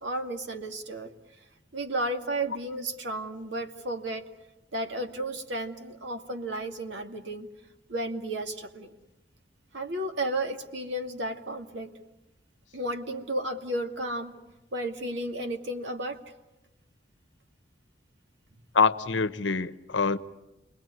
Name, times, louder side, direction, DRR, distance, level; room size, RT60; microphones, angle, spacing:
voice 1, 0.0-1.1 1.7-4.2 4.7-7.5 7.9-8.9 9.7-11.9 12.7-14.4 14.7-16.2, right 1 dB, 75° right, 2.2 m, -33 dB
voice 2, 18.7-20.2, left 5 dB, 80° left, 1.0 m, -25 dB
29.0 x 21.5 x 9.7 m
head